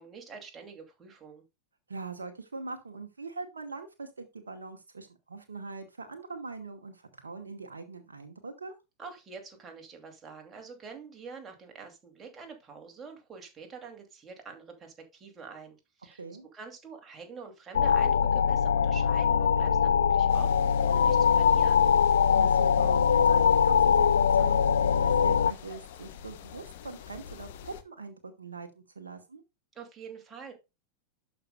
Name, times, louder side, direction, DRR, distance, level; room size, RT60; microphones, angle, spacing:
voice 1, 0.0-1.4 9.0-16.2 16.5-21.9 29.7-30.5, right 5 dB, 20° right, 3 dB, 2.5 m, -46 dB
voice 2, 1.9-8.7 16.2-16.5 22.3-29.4, right 3 dB, 75° right, 5 dB, 1.0 m, -42 dB
sound 1, 17.7-25.5, left 7 dB, 70° left, 0.3 m, -22 dB
sound 2, 20.3-27.8, left 10 dB, 55° left, 1.0 m, -47 dB
11.5 x 5.3 x 2.2 m, 0.25 s
figure-of-eight pair, 90°, 0 cm